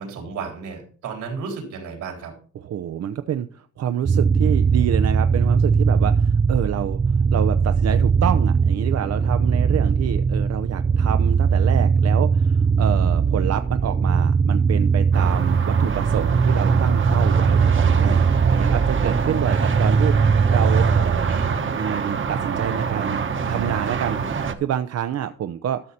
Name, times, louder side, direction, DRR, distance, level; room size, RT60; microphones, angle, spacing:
voice 1, 0.0-2.3 21.3-21.5, right 5 dB, 80° right, 0 dB, 4.1 m, -33 dB
voice 2, 2.5-21.4 21.8-25.8, right 10 dB, 55° right, 9 dB, 0.7 m, -27 dB
sound 1, 4.1-21.6, right 5 dB, 20° right, 0.4 m, -19 dB
sound 2, 15.1-24.5, right 5 dB, 40° right, 1.2 m, -26 dB
12.5 x 6.4 x 4.2 m, 0.43 s
cardioid pair, 90°, 30 cm